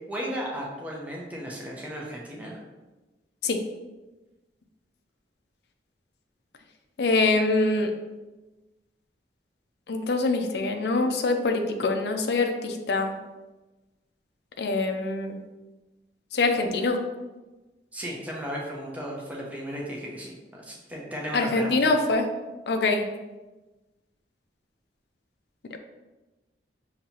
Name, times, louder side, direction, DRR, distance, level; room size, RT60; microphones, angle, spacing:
voice 1, 0.1-2.6 17.9-21.9, equal, 10° right, -4 dB, 0.7 m, -35 dB
voice 2, 7.0-7.9 9.9-13.1 14.6-15.4 16.3-17.0 21.3-22.2 22.7-23.0, left 3 dB, 65° left, 5 dB, 0.5 m, -24 dB
6.1 x 2.8 x 2.8 m, 1.1 s
head